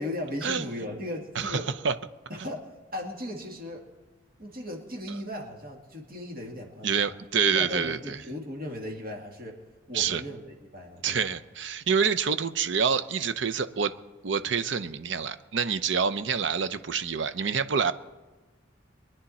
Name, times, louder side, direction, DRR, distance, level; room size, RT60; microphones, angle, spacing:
voice 1, 0.0-1.7 2.3-2.6 2.9-3.8 4.4-7.1 7.5-9.5 9.9-11.3, left 1 dB, 45° right, 0 dB, 2.2 m, -37 dB
voice 2, 1.3-1.9 6.8-8.2 9.9-10.2 11.0-13.9 14.2-17.9, right 6 dB, 70° right, 12 dB, 0.7 m, -27 dB
23.0 x 10.0 x 4.2 m, 1.2 s
head